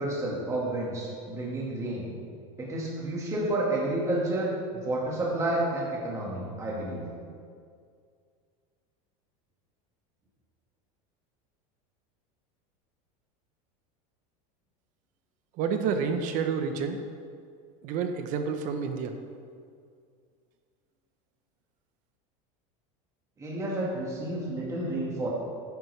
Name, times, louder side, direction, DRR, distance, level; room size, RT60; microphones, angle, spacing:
voice 1, 0.0-2.1 2.6-7.0 23.4-25.3, right 1 dB, 15° right, -4 dB, 1.8 m, -30 dB
voice 2, 15.6-17.0 17.8-19.1, right 6 dB, 45° right, 7 dB, 0.8 m, -29 dB
11.5 x 9.4 x 3.3 m, 2.2 s
supercardioid pair, 150°, 18 cm